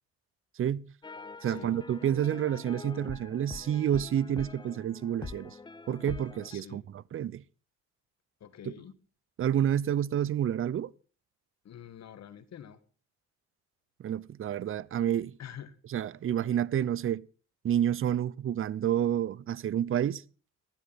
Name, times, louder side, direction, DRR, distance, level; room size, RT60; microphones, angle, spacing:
voice 1, 0.6-0.9 1.4-5.6 5.9-7.4 8.7-8.8 9.4-10.9 14.0-15.4 15.9-17.3 17.6-20.2, right 10 dB, 45° right, 0.6 m, -29 dB
sound 1, 1.0-6.6, left 4 dB, 15° left, 0.6 m, -44 dB
voice 2, 1.4-1.8 6.5-6.8 8.4-8.9 11.6-12.8 15.4-15.7, left 9 dB, 60° left, 1.6 m, -46 dB
13.0 x 11.5 x 5.7 m
cardioid pair, 90°, 30 cm